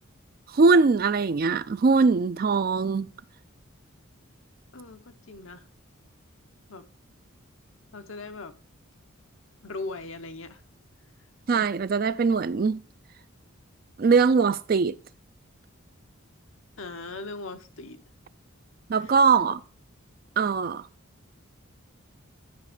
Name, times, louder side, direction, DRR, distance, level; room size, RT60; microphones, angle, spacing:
voice 1, 0.5-3.1 11.5-12.8 14.0-15.0 18.9-19.6 20.4-20.9, right 4 dB, 45° right, 0.3 m, -21 dB
voice 2, 4.7-5.6 6.7-6.9 7.9-8.6 9.6-10.6 16.8-18.0 19.0-19.1, left 3 dB, 65° left, 0.9 m, -39 dB
10.5 x 5.4 x 4.9 m
head